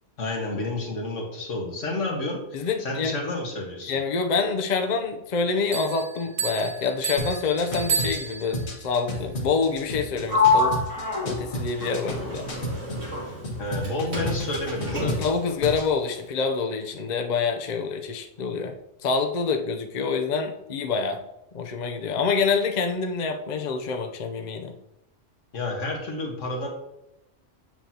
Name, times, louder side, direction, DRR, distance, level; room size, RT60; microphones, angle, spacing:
voice 1, 0.2-4.0 13.6-15.2 25.5-26.7, left 2 dB, 85° left, 0 dB, 1.8 m, -30 dB
voice 2, 2.5-3.1 3.9-10.8 11.2-12.5 15.0-18.7 19.0-21.2 21.5-24.7, left 5 dB, 45° left, 4 dB, 0.7 m, -26 dB
sound 1, 5.7-8.7, right 6 dB, 65° right, 0.9 m, -31 dB
sound 2, 7.2-13.1 13.4-15.9, left 1 dB, 60° left, 1.5 m, -33 dB
Sliding door, 10.3-13.9 14.1-15.4, left 4 dB, 85° right, 2.4 m, -26 dB
7.5 x 6.9 x 2.8 m, 0.87 s
omnidirectional pair, 1.3 m